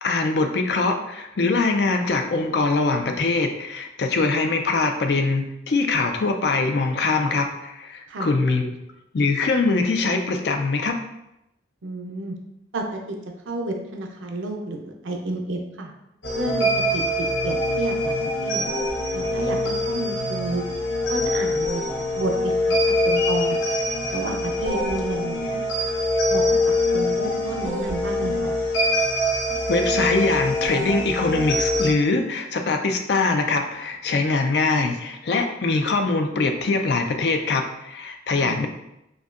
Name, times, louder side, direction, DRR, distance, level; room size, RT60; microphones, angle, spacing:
voice 1, 0.0-8.7 9.1-11.0 29.7-38.7, left 3 dB, 60° left, 5 dB, 0.4 m, -23 dB
voice 2, 11.8-12.3 12.7-13.2 13.5-15.9 16.4-18.2 18.4-18.6 19.1-20.6 21.1-21.8 22.2-23.7 24.1-25.6 26.3-26.4 26.9-28.6 38.4-38.6, right 2 dB, 85° right, 2 dB, 0.6 m, -31 dB
sound 1, 16.2-31.9, left 1 dB, 75° left, 0.9 m, -24 dB
5.2 x 2.2 x 2.4 m, 0.85 s
head